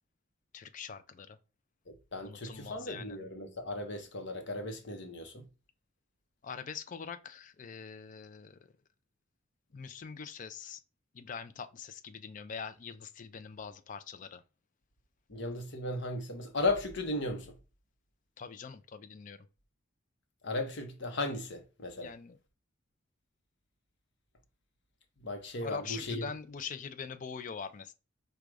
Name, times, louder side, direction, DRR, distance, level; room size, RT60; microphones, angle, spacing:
voice 1, 0.5-1.4 2.2-3.2 6.4-8.7 9.7-10.8 11.1-14.4 18.4-19.5 22.0-22.4 25.6-27.9, left 6 dB, 35° left, 0.3 m, -43 dB
voice 2, 1.9-5.4 15.3-17.5 20.4-22.1 25.2-26.2, left 2 dB, 55° left, 0.8 m, -36 dB
5.0 x 2.3 x 4.7 m
head